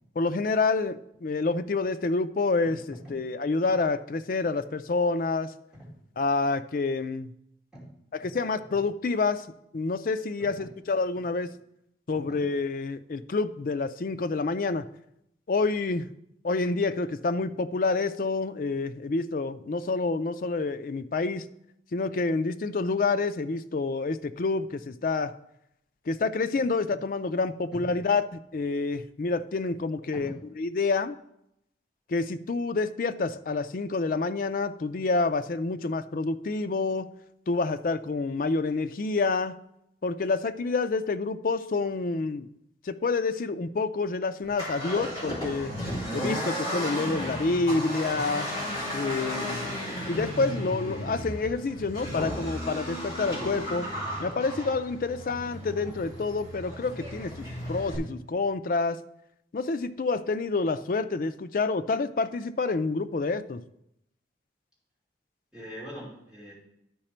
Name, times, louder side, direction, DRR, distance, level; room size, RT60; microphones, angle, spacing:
voice 1, 0.2-5.5 6.2-7.3 8.1-9.5 9.7-11.5 12.1-14.9 15.5-16.1 16.4-21.5 21.9-25.3 26.1-31.1 32.1-37.1 37.5-39.6 40.0-42.5 42.8-45.7 46.1-48.5 48.9-49.7 50.1-53.9 54.2-57.3 57.7-59.0 59.5-63.6, left 3 dB, 50° left, 10 dB, 0.4 m, -28 dB
Accelerating revving vroom, 44.4-57.9, equal, 20° left, 3.6 m, -34 dB
voice 2, 65.5-66.5, equal, 5° right, -7 dB, 2.7 m, -43 dB
12.0 x 4.9 x 4.4 m, 0.79 s
head